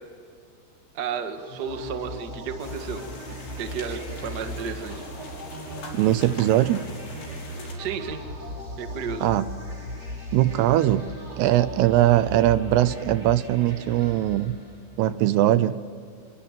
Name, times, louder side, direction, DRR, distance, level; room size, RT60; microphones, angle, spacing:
voice 1, 0.9-5.0 7.8-8.2 8.8-9.2, right 6 dB, 60° right, 6 dB, 1.1 m, -33 dB
sound 1, 1.4-15.0, equal, 20° right, 6.6 m, -38 dB
sound 2, 2.6-7.7, left 3 dB, 90° left, 7.8 m, -42 dB
voice 2, 5.9-6.8 9.2-9.5 10.3-11.1 11.4-14.6 15.0-15.8, right 14 dB, 80° right, 14 dB, 2.6 m, -21 dB
25.5 x 24.0 x 7.5 m, 2.1 s
omnidirectional pair, 5.0 m